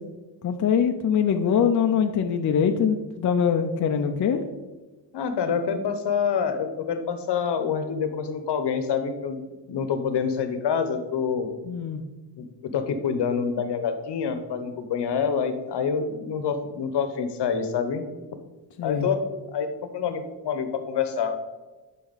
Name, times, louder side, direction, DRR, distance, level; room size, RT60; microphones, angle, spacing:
voice 1, 0.4-4.4 11.7-12.0 18.8-19.1, left 7 dB, 45° left, 5 dB, 0.5 m, -23 dB
voice 2, 5.1-9.4 9.7-11.5 12.4-12.5 12.7-18.1 18.8-21.4, left 6 dB, 65° left, 8 dB, 1.0 m, -27 dB
11.0 x 4.2 x 4.0 m, 1.2 s
cardioid pair, 115°, 44 cm